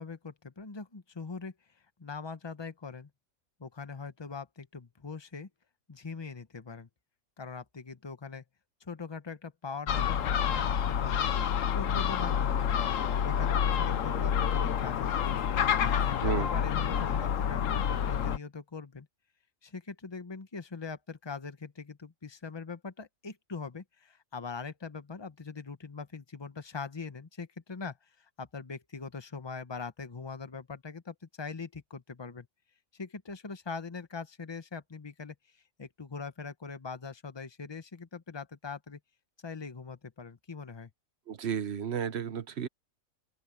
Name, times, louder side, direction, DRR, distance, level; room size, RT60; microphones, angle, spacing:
voice 1, 0.0-3.1 3.6-5.5 5.9-6.9 7.4-8.4 8.8-11.3 11.7-12.6 13.2-15.3 15.8-19.1 19.6-32.5 32.9-39.0 39.4-40.9, left 4 dB, 20° left, 1.0 m, -42 dB
Gull seagull, 9.9-18.4, left 8 dB, 70° left, 1.2 m, -28 dB
voice 2, 16.1-16.5 41.3-42.7, right 7 dB, 55° right, 1.1 m, -33 dB
open air
omnidirectional pair, 1.4 m